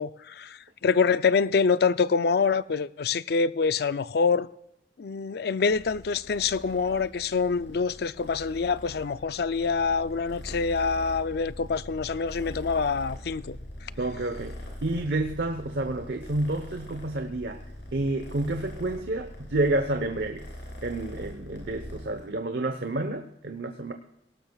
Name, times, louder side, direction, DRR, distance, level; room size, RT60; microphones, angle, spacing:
voice 1, 0.0-4.5 5.0-13.6, left 5 dB, 60° left, 0.5 m, -26 dB
Purr, 5.7-22.2, left 1 dB, 80° left, 6.7 m, -43 dB
voice 2, 14.0-17.6 17.9-20.5 20.8-23.9, right 2 dB, 65° right, 1.0 m, -29 dB
18.5 x 18.5 x 2.4 m
head